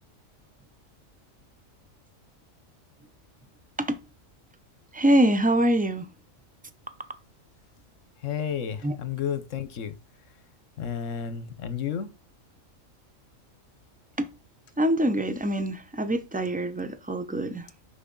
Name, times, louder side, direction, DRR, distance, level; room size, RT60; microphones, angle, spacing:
voice 1, 4.9-6.1 8.8-8.9 14.2-14.3 14.8-17.7, right 1 dB, 10° right, 0.4 m, -24 dB
voice 2, 8.2-10.0 10.8-12.1, left 8 dB, 70° left, 1.2 m, -31 dB
6.3 x 5.7 x 3.8 m
omnidirectional pair, 1.4 m